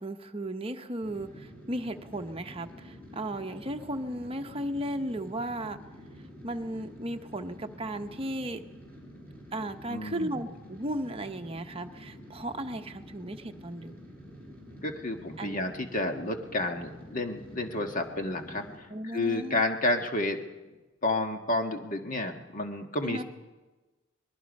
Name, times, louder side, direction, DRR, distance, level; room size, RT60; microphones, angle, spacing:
voice 1, 0.0-5.8 6.4-8.6 9.5-13.9 15.4-15.5 18.9-19.6 23.0-23.2, right 1 dB, 30° right, 6 dB, 1.0 m, -35 dB
sound 1, 1.0-18.8, equal, 10° left, 6.5 m, -48 dB
voice 2, 9.9-10.4 14.8-20.4 21.0-23.2, left 2 dB, 40° left, 4 dB, 1.6 m, -31 dB
23.5 x 21.0 x 5.4 m, 1.2 s
head